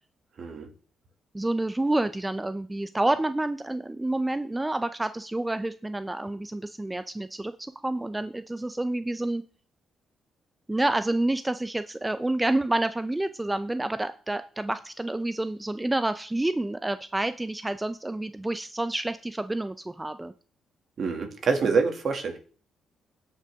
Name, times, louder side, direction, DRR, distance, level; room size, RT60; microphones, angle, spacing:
voice 1, 1.3-9.4 10.7-20.3, right 2 dB, 15° right, 11 dB, 0.6 m, -28 dB
voice 2, 21.0-22.4, right 4 dB, 55° right, 5 dB, 2.2 m, -26 dB
17.0 x 5.7 x 3.6 m, 0.40 s
cardioid pair, 70°, 0 cm